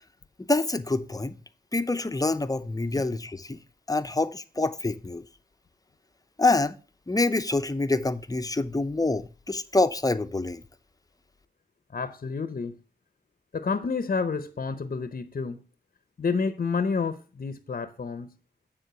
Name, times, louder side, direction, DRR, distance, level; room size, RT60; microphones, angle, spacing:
voice 1, 0.4-1.4 1.7-3.6 3.9-5.2 6.4-6.8 7.1-10.6, left 2 dB, 20° left, 0.7 m, -26 dB
voice 2, 11.9-12.8 13.5-15.6 16.2-18.3, left 5 dB, 50° left, 0.8 m, -29 dB
9.3 x 3.7 x 6.0 m
cardioid pair, 50°, 18 cm